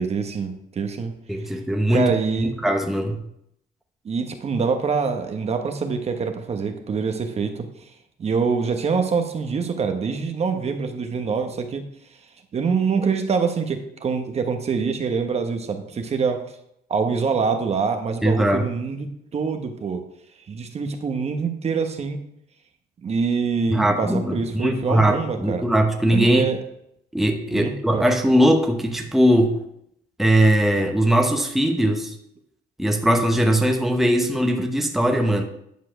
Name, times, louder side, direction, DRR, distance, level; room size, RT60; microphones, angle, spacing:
voice 1, 0.0-1.1 1.9-2.6 4.0-7.7 8.2-11.8 12.5-16.4 16.9-20.0 20.5-22.2 23.0-25.7 26.1-26.6 27.5-28.1, right 5 dB, 40° right, 6 dB, 1.2 m, -25 dB
voice 2, 1.3-2.1 2.4-3.2 18.2-18.7 23.7-26.5 27.1-29.6 30.2-32.1 32.8-35.4, right 1 dB, ahead, 3 dB, 1.0 m, -20 dB
10.5 x 4.7 x 6.2 m, 0.75 s
cardioid pair, 115°, 17 cm